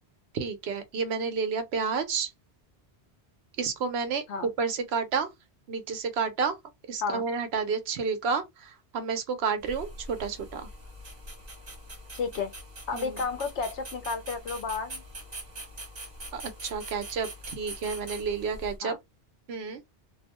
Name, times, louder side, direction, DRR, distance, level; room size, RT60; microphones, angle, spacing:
voice 1, 0.3-2.3 3.6-5.3 5.7-6.6 6.9-10.7 12.9-13.1 16.3-19.0 19.5-19.8, right 5 dB, 70° right, 0.8 m, -30 dB
sound 1, 9.6-18.8, right 1 dB, 40° right, 1.1 m, -43 dB
voice 2, 12.1-12.5 12.9-15.0 18.8-19.0, left 5 dB, 85° left, 1.0 m, -32 dB
2.6 x 2.1 x 2.9 m
omnidirectional pair, 1.1 m